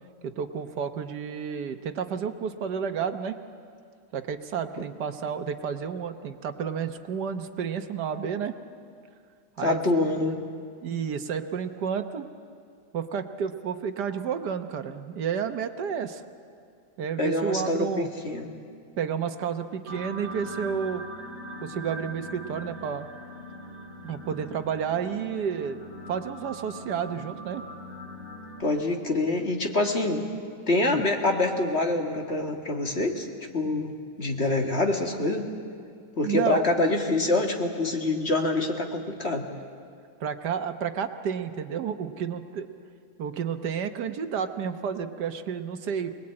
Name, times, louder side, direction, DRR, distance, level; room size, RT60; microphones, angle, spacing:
voice 1, 0.2-3.4 4.1-8.5 9.6-9.9 10.8-12.3 12.9-16.2 17.0-18.1 19.0-21.0 21.6-23.1 24.0-25.8 26.1-27.6 30.8-31.1 33.2-33.3 36.2-36.7 40.2-42.7 43.2-46.1, right 7 dB, 80° right, 8 dB, 1.6 m, -31 dB
voice 2, 9.6-10.4 17.2-18.5 28.6-30.2 30.7-33.3 33.5-33.9 34.2-35.5 36.2-39.4, left 2 dB, 40° left, 2 dB, 2.1 m, -25 dB
sound 1, 19.9-28.6, equal, 30° right, 2.6 m, -41 dB
24.5 x 20.0 x 8.7 m, 2.3 s
omnidirectional pair, 1.8 m